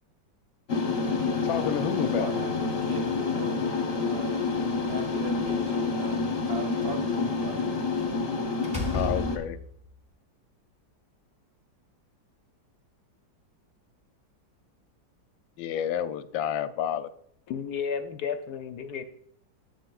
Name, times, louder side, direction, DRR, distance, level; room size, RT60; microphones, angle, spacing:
sound 1, 0.7-9.4, left 4 dB, 40° left, 1.0 m, -28 dB
voice 1, 1.4-2.3 8.9-9.6 15.6-17.1, left 9 dB, 90° left, 11 dB, 1.4 m, -30 dB
voice 2, 2.1-3.7 3.9-4.5 4.9-7.7, right 5 dB, 90° right, 4 dB, 1.9 m, -40 dB
Slam, 4.8-5.8 8.0-8.2 8.6-9.9, left 1 dB, 5° right, 1.0 m, -34 dB
voice 3, 17.5-19.1, left 7 dB, 70° left, 8 dB, 1.0 m, -32 dB
10.5 x 8.2 x 2.4 m, 0.67 s
omnidirectional pair, 2.0 m